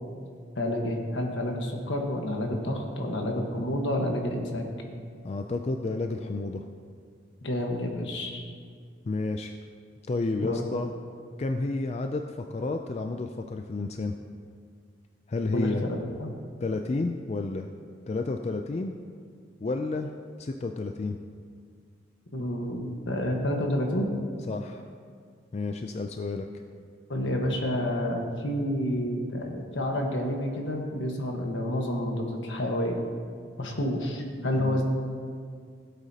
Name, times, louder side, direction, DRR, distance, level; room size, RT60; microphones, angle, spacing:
voice 1, 0.5-4.6 7.4-8.4 10.4-10.6 15.5-16.3 22.3-24.1 27.1-33.0 33.6-34.8, left 1 dB, 75° left, 1 dB, 1.4 m, -29 dB
voice 2, 5.2-6.7 9.1-9.5 10.1-10.9 11.4-14.2 15.3-15.8 16.6-17.7 18.1-18.9 19.6-20.1 20.4-21.2 24.5-24.8 25.5-26.5 34.5-34.8, left 3 dB, 35° left, 5 dB, 0.3 m, -31 dB
17.0 x 8.1 x 2.8 m, 2.1 s
head